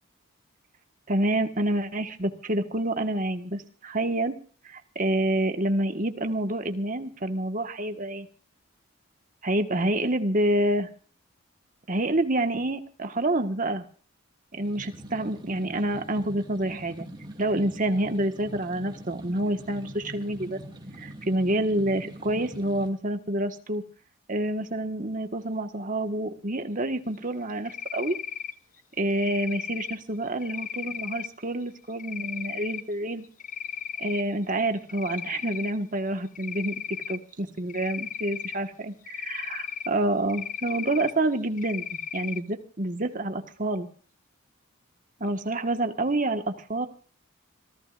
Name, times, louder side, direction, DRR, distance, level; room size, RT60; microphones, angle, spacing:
voice 1, 1.1-4.3 4.6-8.3 9.4-10.9 11.9-13.8 14.5-17.1 17.4-20.6 21.0-23.8 24.3-28.2 29.0-33.2 34.0-36.8 37.1-43.9 45.2-46.9, right 1 dB, 40° right, 7 dB, 1.6 m, -28 dB
sound 1, 14.5-22.9, equal, 20° right, 2.9 m, -42 dB
Cricket, 27.7-28.5 29.1-30.0 30.4-31.3 32.0-32.8 33.2-34.2 34.6-35.8 36.4-37.2 37.7-38.6 39.1-39.9 40.3-41.1 41.6-42.4, left 8 dB, 40° left, 0.7 m, -35 dB
26.5 x 15.5 x 2.6 m, 0.40 s
head